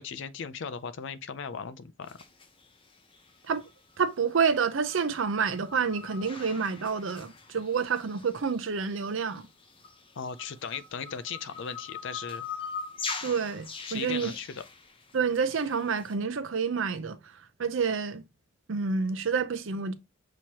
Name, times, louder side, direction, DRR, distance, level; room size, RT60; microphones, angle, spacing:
voice 1, 0.0-2.2 10.2-12.4 13.8-14.6, left 6 dB, 65° left, 0.5 m, -37 dB
sound 1, 2.1-16.1, left 5 dB, 25° left, 0.7 m, -43 dB
voice 2, 4.0-9.5 13.2-14.3 15.1-17.2 17.6-18.2 18.7-19.9, right 5 dB, 70° right, 0.6 m, -28 dB
6.3 x 2.9 x 2.8 m
head